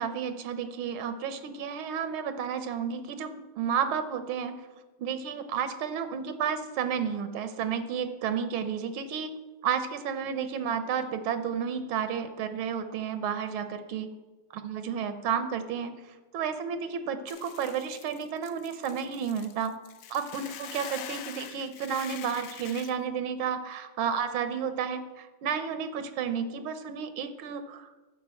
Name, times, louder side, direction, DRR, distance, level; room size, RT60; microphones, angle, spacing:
voice 1, 0.0-4.6 5.0-9.3 9.6-14.1 14.5-16.0 16.3-19.8 20.1-27.9, right 7 dB, 90° right, 10 dB, 1.7 m, -32 dB
Hiss / Boiling, 17.3-22.9, left 9 dB, 80° left, 0.7 m, -44 dB
10.0 x 4.9 x 7.5 m, 1.2 s
omnidirectional pair, 2.2 m